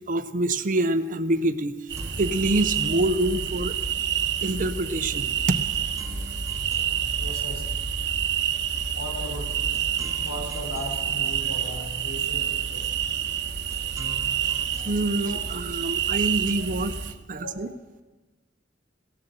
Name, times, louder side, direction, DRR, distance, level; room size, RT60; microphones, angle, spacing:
voice 1, 0.1-3.7 4.4-5.6 14.8-17.0 17.3-17.7, right 1 dB, 45° right, 12 dB, 0.7 m, -26 dB
sound 1, 1.0-1.1 1.4-17.0, right 1 dB, 15° right, 1.1 m, -50 dB
sound 2, 1.9-17.1, right 8 dB, 60° right, 1.0 m, -28 dB
voice 2, 7.2-7.9 8.9-9.7 10.2-13.1 15.2-15.4 16.5-16.7 17.3-17.7, equal, 80° left, -1 dB, 4.5 m, -37 dB
17.0 x 7.7 x 7.7 m, 1.1 s
head